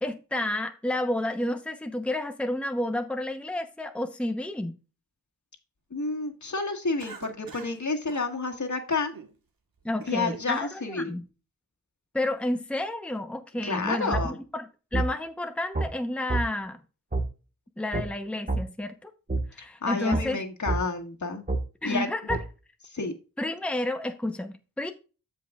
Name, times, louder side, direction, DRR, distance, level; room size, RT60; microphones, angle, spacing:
voice 1, 0.0-4.7 9.8-11.3 12.1-16.8 17.8-19.1 19.5-20.4 21.8-22.4 23.4-24.9, left 1 dB, 5° left, 0.9 m, -31 dB
voice 2, 5.9-9.1 10.1-11.1 13.6-14.4 19.6-21.4 21.8-22.1 22.9-23.1, left 3 dB, 55° left, 1.8 m, -30 dB
Cough, 7.0-7.8 8.1-8.3 8.9-9.3 9.8-10.5, right 5 dB, 85° right, 1.5 m, -44 dB
sound 1, 14.1-14.3 14.9-15.1 15.7-15.9 16.3-16.4 17.1-17.3 17.9-18.1 18.5-18.6 19.3-19.4 20.1-20.3 20.7-20.8 21.5-21.6 22.3-22.4, right 3 dB, 25° right, 1.5 m, -26 dB
13.5 x 5.2 x 2.4 m
cardioid pair, 45°, 34 cm